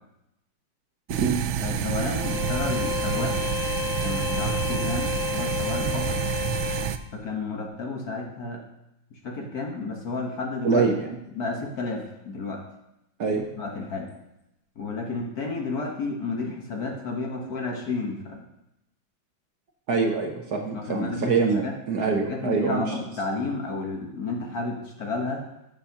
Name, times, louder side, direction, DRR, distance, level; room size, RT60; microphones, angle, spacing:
sound 1, 1.1-7.0, right 10 dB, 75° right, 1.3 m, -29 dB
voice 1, 1.6-3.4 4.0-6.2 7.1-8.6 9.2-10.8 11.3-12.6 13.6-14.1 14.8-18.4 20.7-21.7 22.0-25.4, left 3 dB, 50° left, 1 dB, 1.5 m, -31 dB
Bowed string instrument, 2.2-7.0, left 9 dB, 85° left, 1.6 m, -31 dB
voice 2, 10.6-11.2 13.2-13.5 19.9-22.8, right 5 dB, 55° right, 2 dB, 1.2 m, -24 dB
14.0 x 7.1 x 2.9 m, 0.86 s
omnidirectional pair, 2.3 m